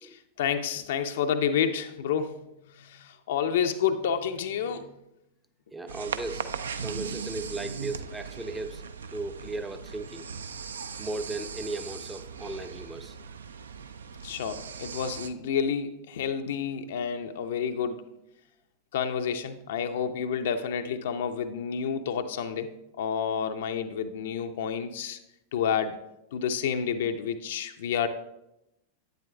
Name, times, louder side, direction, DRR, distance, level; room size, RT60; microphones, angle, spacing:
voice 1, 0.0-2.5 2.8-4.9 14.2-18.1 18.9-22.7 23.0-25.2 25.5-26.0 26.3-28.1, left 7 dB, 60° left, 8 dB, 0.5 m, -29 dB
voice 2, 5.7-6.5 6.8-8.8 9.1-10.3 11.0-13.2, right 2 dB, 10° right, 9 dB, 0.5 m, -36 dB
sound 1, 5.9-15.3, right 6 dB, 70° right, 0.4 m, -38 dB
10.5 x 8.9 x 2.3 m, 0.88 s
figure-of-eight pair, 90°, 0 cm